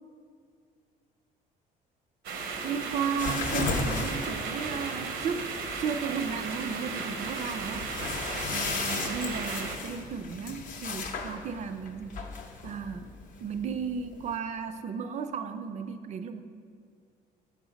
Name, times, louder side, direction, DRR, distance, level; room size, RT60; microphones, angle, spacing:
sound 1, 2.2-9.8, right 4 dB, 75° right, 0.7 m, -35 dB
voice 1, 2.6-5.5 5.8-7.9 8.5-12.2 12.6-13.1 13.4-16.4, right 6 dB, 45° right, 8 dB, 0.4 m, -34 dB
sound 2, 3.2-14.4, left 4 dB, 50° left, 0.6 m, -36 dB
6.2 x 4.0 x 5.0 m, 2.2 s
cardioid pair, 110°, 17 cm